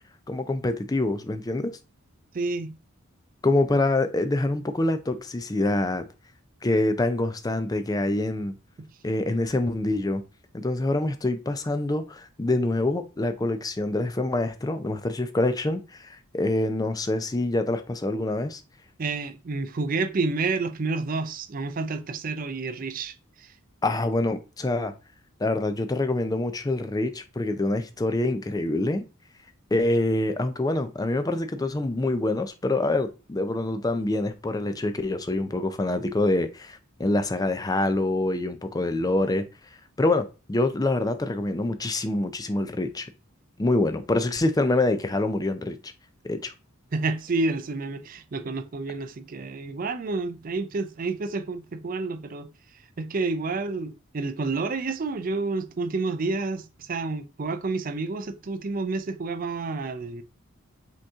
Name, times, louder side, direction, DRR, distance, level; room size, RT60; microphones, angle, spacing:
voice 1, 0.3-1.7 3.4-6.1 6.6-8.5 9.0-10.2 10.5-16.0 16.3-18.6 23.8-24.9 25.4-29.0 29.7-39.5 40.0-43.1 43.6-45.9 46.2-46.5, left 2 dB, 15° left, 0.4 m, -25 dB
voice 2, 2.3-2.7 19.0-23.5 46.9-52.5 53.0-60.2, right 3 dB, 40° right, 0.4 m, -29 dB
5.3 x 2.9 x 3.5 m
head